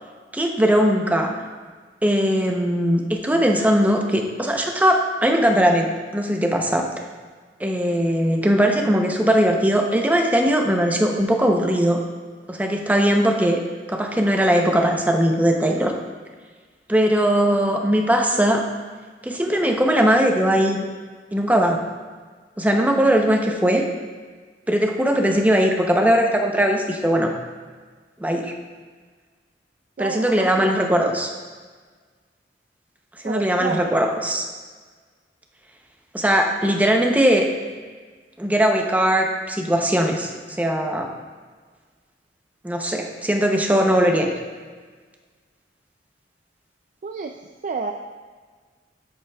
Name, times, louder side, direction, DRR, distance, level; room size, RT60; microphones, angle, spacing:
voice 1, 0.3-1.3 2.0-6.9 7.6-12.0 12.5-13.6 13.9-15.9 16.9-18.6 19.2-20.9 21.3-21.8 22.6-23.9 24.7-27.3 28.2-28.5 30.0-31.3 33.2-34.5 36.1-37.5 38.4-40.3 40.6-41.1 42.6-44.3, equal, 10° right, 2 dB, 0.6 m, -19 dB
voice 2, 30.0-30.8 31.0-31.3 33.2-34.1 47.0-47.3 47.6-47.9, right 4 dB, 45° right, 3 dB, 0.3 m, -30 dB
9.4 x 8.0 x 2.3 m, 1.5 s
head